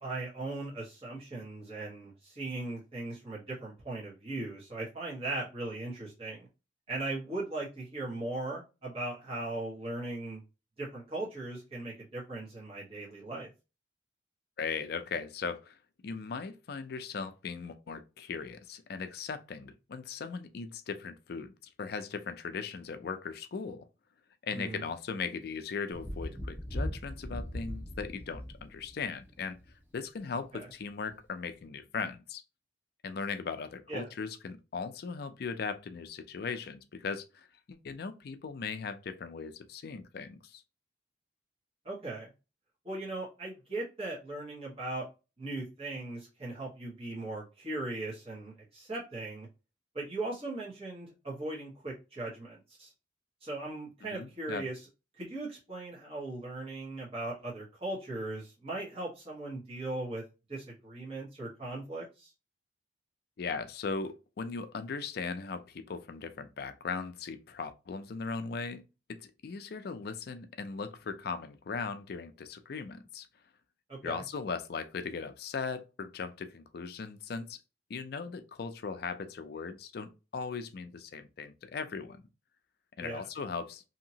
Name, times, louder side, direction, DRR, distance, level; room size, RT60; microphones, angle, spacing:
voice 1, 0.0-6.5 6.9-10.4 10.8-13.5 24.5-24.8 30.5-30.7 33.9-34.1 41.8-42.3 42.8-45.0 45.4-49.5 49.9-52.9 53.4-54.7 55.2-60.2 60.5-62.3 74.0-74.2 83.0-83.3, right 2 dB, 30° right, 1.3 m, -38 dB
voice 2, 14.6-15.8 16.0-21.5 21.8-23.9 24.4-29.6 29.9-32.4 33.0-40.6 54.1-54.6 63.4-73.3 74.0-77.6 77.9-82.2 83.0-83.8, left 5 dB, 55° left, 0.4 m, -38 dB
Thunder, 25.9-29.8 31.1-31.2, equal, 10° right, 1.0 m, -39 dB
2.8 x 2.7 x 2.7 m
head